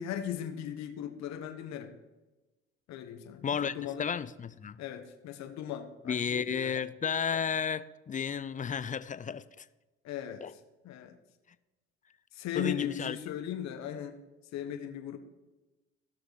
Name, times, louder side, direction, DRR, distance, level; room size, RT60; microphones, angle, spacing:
voice 1, 0.0-1.9 2.9-4.1 4.8-6.8 10.0-10.4 10.8-11.2 12.3-14.2 14.5-15.2, left 9 dB, 60° left, 1.4 m, -38 dB
voice 2, 3.4-4.8 6.0-9.7 10.4-10.5 12.5-13.2, left 7 dB, 25° left, 0.5 m, -33 dB
15.5 x 6.4 x 4.7 m
hypercardioid pair, 70°, 30 cm